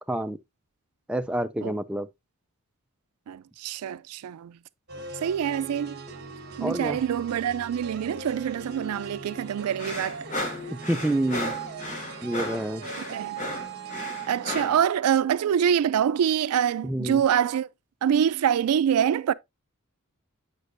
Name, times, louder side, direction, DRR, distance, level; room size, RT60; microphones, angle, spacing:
voice 1, 0.1-0.4 1.1-2.1 6.6-7.0 10.9-11.5 12.2-12.8 16.8-17.2, right 1 dB, 5° right, 0.3 m, -27 dB
voice 2, 3.3-4.6 5.2-6.0 6.6-10.2 13.0-13.4 14.3-17.7 18.0-19.3, right 8 dB, 90° right, 0.3 m, -25 dB
sound 1, 4.9-14.6, right 5 dB, 50° right, 1.3 m, -40 dB
sound 2, 9.8-14.8, left 1 dB, 35° left, 1.5 m, -34 dB
8.1 x 5.1 x 2.5 m
head